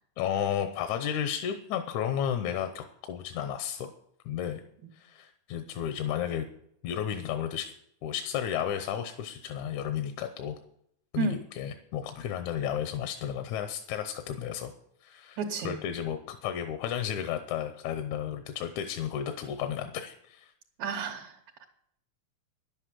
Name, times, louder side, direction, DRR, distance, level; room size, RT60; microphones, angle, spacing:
voice 1, 0.2-3.9 4.3-4.6 4.9-6.5 6.8-7.7 8.0-10.6 11.1-14.7 15.0-15.4 15.6-20.5, left 9 dB, 80° left, 8 dB, 2.1 m, -33 dB
voice 2, 15.4-15.8 20.8-21.6, right 4 dB, 70° right, 1 dB, 2.3 m, -32 dB
11.0 x 8.1 x 7.5 m, 0.71 s
omnidirectional pair, 3.4 m